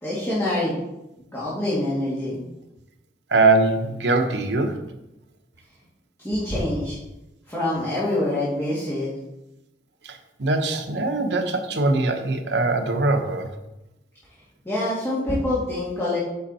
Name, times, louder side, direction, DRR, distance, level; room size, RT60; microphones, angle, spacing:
voice 1, 0.0-0.8 1.2-2.4 6.2-7.0 7.5-9.1 14.6-16.2, left 1 dB, 15° left, -9 dB, 2.2 m, -25 dB
voice 2, 3.3-4.7 10.0-13.5, right 3 dB, 70° right, 5 dB, 0.9 m, -22 dB
8.1 x 6.2 x 4.2 m, 0.94 s
head